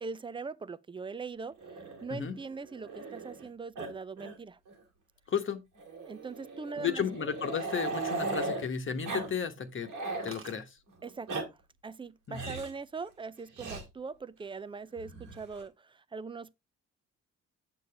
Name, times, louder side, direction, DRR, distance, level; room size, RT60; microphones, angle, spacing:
voice 1, 0.0-4.6 6.0-7.1 11.0-11.6 11.8-16.6, right 4 dB, 15° right, 0.5 m, -41 dB
Growling, 1.6-3.5 3.8-3.9 4.2-4.4 4.7-4.8 5.8-8.7 9.0-9.3 9.6-10.3 11.0-11.5 12.3-12.8 13.6-13.8 15.0-15.6, right 3 dB, 90° right, 2.6 m, -38 dB
voice 2, 5.3-5.6 6.8-9.9 10.2-10.7 12.3-12.5, left 7 dB, 40° left, 1.2 m, -33 dB
sound 1, 10.3-10.6 11.5-11.9 12.2-12.6, right 6 dB, 45° right, 1.2 m, -52 dB
8.0 x 6.8 x 3.4 m
cardioid pair, 90°, 30 cm